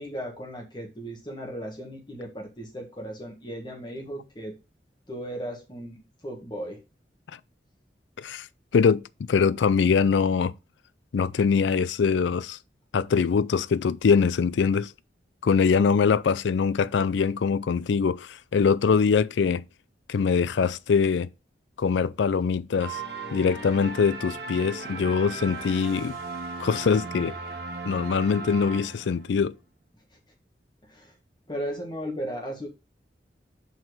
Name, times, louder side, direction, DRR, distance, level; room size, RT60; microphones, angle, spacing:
voice 1, 0.0-4.6 5.1-6.8 30.9-31.1 31.5-32.7, equal, 25° left, 1.7 m, -36 dB
voice 2, 9.3-10.5 11.1-12.6 12.9-14.9 15.4-19.6 20.1-21.3 21.8-23.0 23.3-26.2 26.6-27.3 27.9-29.5, left 5 dB, 90° left, 0.4 m, -23 dB
sound 1, 22.8-29.4, right 3 dB, 60° right, 1.5 m, -37 dB
5.7 x 4.4 x 6.3 m
head